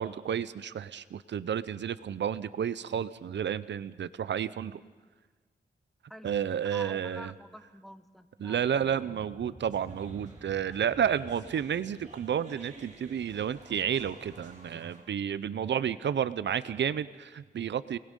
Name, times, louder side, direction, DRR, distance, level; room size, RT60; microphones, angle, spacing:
voice 1, 0.0-4.8 6.2-7.3 8.4-18.0, right 8 dB, 85° right, 16 dB, 0.7 m, -31 dB
voice 2, 6.6-9.2 15.6-15.8, equal, ahead, 9 dB, 1.3 m, -48 dB
sound 1, 8.4-13.4, right 1 dB, 20° right, 2.4 m, -52 dB
sound 2, 9.7-15.0, right 2 dB, 40° right, 4.4 m, -53 dB
29.0 x 20.0 x 5.4 m, 1.5 s
wide cardioid pair, 100°, 18 cm